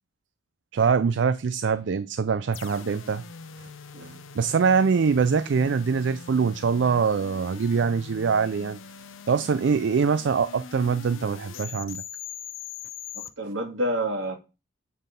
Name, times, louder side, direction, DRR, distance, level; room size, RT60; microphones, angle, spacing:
voice 1, 0.7-3.2 4.3-8.8 9.3-12.0, right 5 dB, 65° right, 0.4 m, -23 dB
sound 1, 2.5-13.3, left 7 dB, 85° left, 0.7 m, -42 dB
voice 2, 13.4-14.4, right 1 dB, 80° right, 2.3 m, -28 dB
8.6 x 4.0 x 5.2 m
head